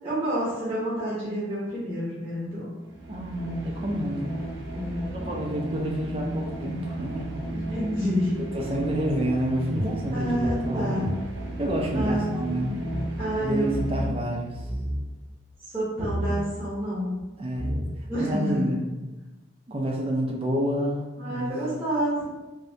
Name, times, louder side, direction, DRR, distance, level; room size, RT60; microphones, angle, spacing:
voice 1, 0.0-2.7 4.7-5.3 7.5-8.4 10.1-11.1 11.9-12.7 13.2-14.2 15.6-17.2 18.1-18.8 21.2-22.2, equal, 10° right, -9 dB, 0.8 m, -29 dB
sound 1, 2.8-14.5, right 1 dB, 70° right, 0.7 m, -34 dB
voice 2, 3.1-4.3 5.1-7.3 8.5-11.0 11.6-12.7 13.4-14.6 17.4-17.7 18.2-18.8 19.7-21.5, equal, 30° right, -1 dB, 0.4 m, -29 dB
sound 2, 9.7-12.2 12.4-12.5 12.8-13.1 13.7-14.2 14.5-15.1 16.0-16.4 17.2-17.3 17.5-18.2, equal, 30° left, 0.8 m, -31 dB
3.2 x 2.7 x 2.7 m, 1.1 s
head